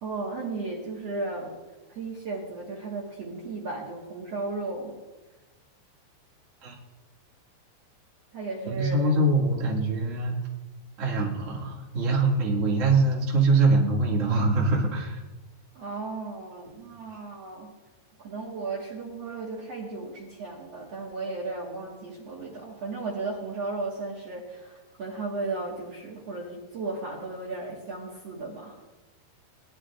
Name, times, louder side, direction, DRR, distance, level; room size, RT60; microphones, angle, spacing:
voice 1, 0.0-1.5 1.9-4.9 8.3-9.3 15.7-17.7 18.2-28.8, right 3 dB, 55° right, -3 dB, 1.9 m, -35 dB
voice 2, 8.6-10.3 11.0-15.2, right 3 dB, 35° right, -4 dB, 1.3 m, -23 dB
20.5 x 11.5 x 2.5 m, 1.1 s
omnidirectional pair, 4.9 m